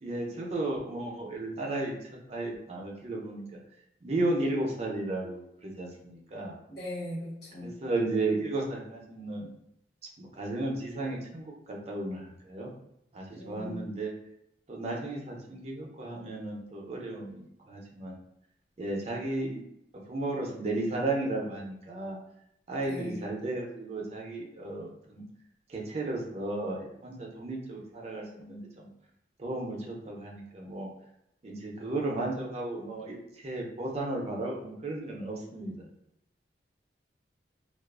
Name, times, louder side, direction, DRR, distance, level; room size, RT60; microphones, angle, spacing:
voice 1, 0.0-3.4 4.0-6.5 7.6-9.5 10.2-12.7 13.1-14.1 14.7-18.1 18.8-19.6 20.1-22.2 22.7-25.2 25.7-28.9 29.4-30.9 31.4-33.2 33.4-35.9, right 2 dB, 35° right, -1 dB, 0.4 m, -34 dB
voice 2, 6.7-7.8 13.3-13.9 22.8-23.3, left 1 dB, 60° left, -7 dB, 1.0 m, -39 dB
2.3 x 2.3 x 2.3 m, 0.78 s
head